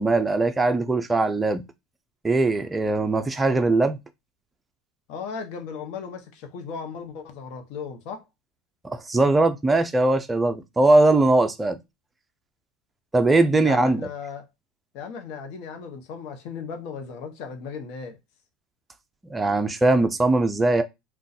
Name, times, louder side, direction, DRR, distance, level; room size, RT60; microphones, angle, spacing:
voice 1, 0.0-1.6 2.2-4.0 8.8-11.8 13.1-14.0 19.3-20.8, right 2 dB, 10° right, 0.4 m, -20 dB
voice 2, 5.1-8.2 13.6-14.5 14.9-18.2, left 6 dB, 60° left, 0.8 m, -36 dB
2.5 x 2.3 x 4.0 m
supercardioid pair, 130°, 0 cm